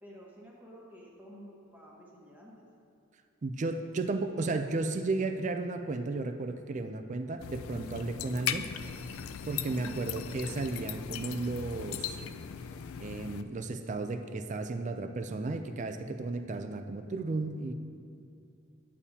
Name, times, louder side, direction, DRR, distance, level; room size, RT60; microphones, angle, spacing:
voice 1, 0.0-2.6 9.8-10.0, equal, 10° right, -4 dB, 1.3 m, -50 dB
voice 2, 3.4-8.7 9.5-12.2 13.0-17.7, right 3 dB, 35° right, 7 dB, 0.4 m, -34 dB
sound 1, 7.4-13.4, left 8 dB, 85° left, 0.4 m, -38 dB
11.0 x 8.4 x 2.8 m, 2.5 s
head